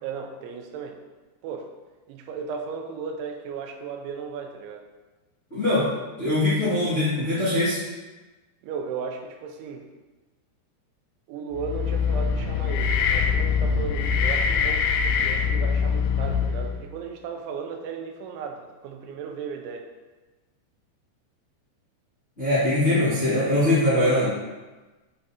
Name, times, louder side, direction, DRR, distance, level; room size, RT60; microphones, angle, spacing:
voice 1, 0.0-1.0 1.4-1.7 2.1-4.9 8.6-9.9 11.3-19.9, right 6 dB, 90° right, 3 dB, 3.0 m, -35 dB
voice 2, 5.5-5.9 6.2-7.8 22.4-24.3, left 1 dB, 35° left, -13 dB, 1.1 m, -22 dB
sound 1, 11.5-16.9, left 6 dB, 85° left, 2.4 m, -23 dB
8.8 x 4.7 x 2.9 m, 1.2 s
omnidirectional pair, 5.3 m